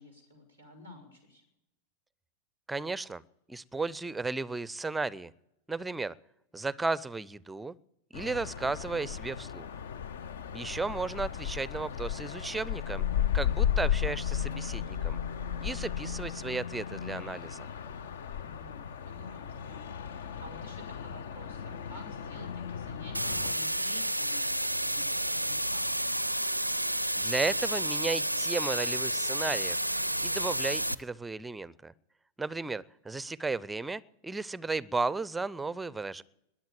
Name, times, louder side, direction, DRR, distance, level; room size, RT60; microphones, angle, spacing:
voice 1, 0.0-1.4 10.6-10.9 18.3-26.2, left 1 dB, 85° left, -1 dB, 5.0 m, -51 dB
voice 2, 2.7-3.2 3.5-5.3 5.7-6.1 6.5-7.7 8.1-9.7 10.5-13.0 13.3-15.2 15.6-17.6 27.1-29.8 30.2-31.9 32.4-36.2, right 3 dB, 10° right, 21 dB, 0.5 m, -34 dB
sound 1, 8.1-23.5, left 9 dB, 60° left, 0.6 m, -34 dB
sound 2, 23.1-30.9, right 1 dB, 90° right, 0.5 m, -30 dB
21.0 x 7.4 x 9.0 m, 0.86 s
figure-of-eight pair, 90°, 0 cm